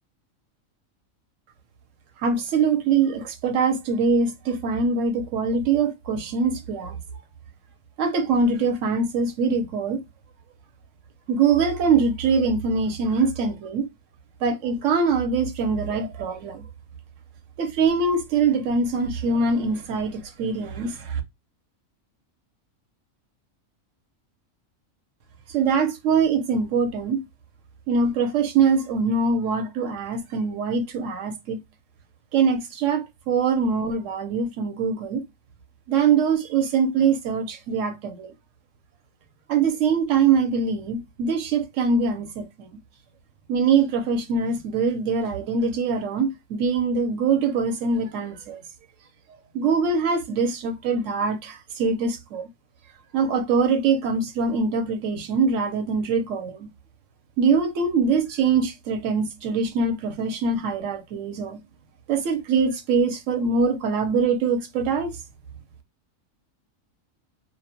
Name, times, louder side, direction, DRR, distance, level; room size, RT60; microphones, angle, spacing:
voice 1, 2.2-7.0 8.0-10.0 11.3-13.9 14.4-16.7 17.6-21.2 25.5-27.2 27.9-31.6 32.3-35.3 35.9-38.3 39.5-42.7 43.5-48.6 49.5-52.5 53.1-56.7 57.4-61.6 62.1-65.2, right 5 dB, 70° right, 1.0 m, -23 dB
2.5 x 2.1 x 2.7 m
omnidirectional pair, 1.4 m